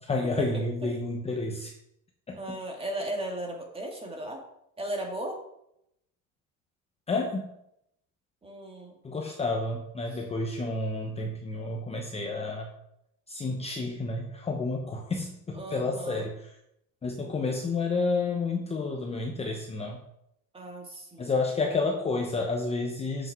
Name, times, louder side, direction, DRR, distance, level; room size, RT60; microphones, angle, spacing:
voice 1, 0.0-1.7 2.3-2.4 7.1-7.5 9.0-12.7 13.3-16.3 17.0-20.0 21.2-23.3, left 3 dB, 20° left, 1 dB, 0.9 m, -30 dB
voice 2, 2.3-4.4 4.8-5.4 8.4-9.0 15.5-16.3 20.5-21.3, right 1 dB, 15° right, 2 dB, 2.0 m, -36 dB
7.6 x 6.5 x 6.0 m, 0.78 s
cardioid pair, 150°, 35 cm